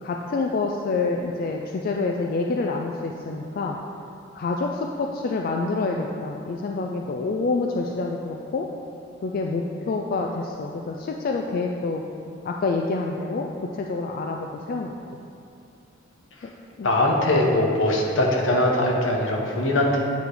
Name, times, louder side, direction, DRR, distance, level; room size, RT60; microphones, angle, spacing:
voice 1, 0.0-3.8 4.3-8.7 9.2-12.0 12.4-14.9 16.4-16.5 16.8-16.9, left 3 dB, 45° left, 1 dB, 0.3 m, -27 dB
voice 2, 16.8-20.0, left 1 dB, 75° left, -1 dB, 1.0 m, -21 dB
9.0 x 3.2 x 4.9 m, 2.6 s
head